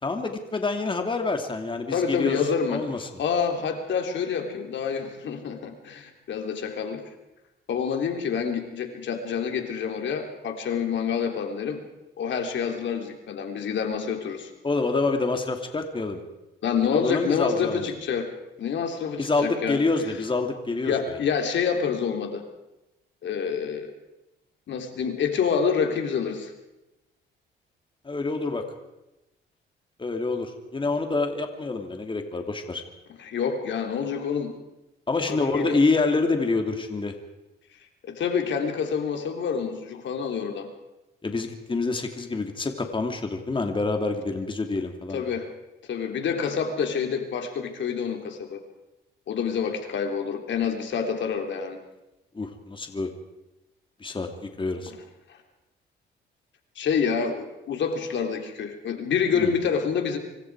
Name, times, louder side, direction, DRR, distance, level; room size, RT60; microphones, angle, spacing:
voice 1, 0.0-2.4 2.7-3.0 14.6-16.2 16.9-17.9 19.2-21.2 28.0-28.6 30.0-32.8 35.1-37.1 41.2-45.2 52.3-53.1 54.0-54.3 54.6-54.9 59.3-59.5, left 3 dB, 25° left, 5 dB, 2.8 m, -27 dB
voice 2, 1.9-7.0 7.7-11.8 12.2-14.5 16.6-18.3 18.6-19.8 20.9-22.4 23.2-23.9 24.7-26.5 33.2-34.5 35.3-35.8 38.0-40.7 45.1-45.5 45.9-48.6 49.3-51.8 54.9-55.0 56.7-60.2, left 6 dB, 65° left, 4 dB, 3.5 m, -27 dB
26.0 x 25.0 x 4.9 m, 0.97 s
cardioid pair, 90°, 20 cm